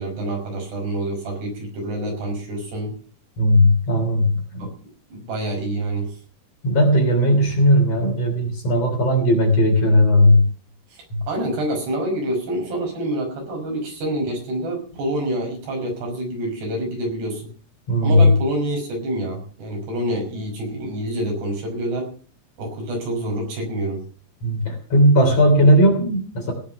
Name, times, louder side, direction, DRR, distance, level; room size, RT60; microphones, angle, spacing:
voice 1, 0.0-2.9 4.6-4.7 5.1-6.2 10.9-17.4 18.0-22.1 22.6-24.0, right 1 dB, 85° right, 2 dB, 7.7 m, -27 dB
voice 2, 3.4-4.7 6.6-10.5 11.1-11.2 17.9-18.3 24.4-26.5, equal, 40° left, 2 dB, 4.1 m, -17 dB
17.0 x 8.5 x 6.9 m, 0.42 s
omnidirectional pair, 4.7 m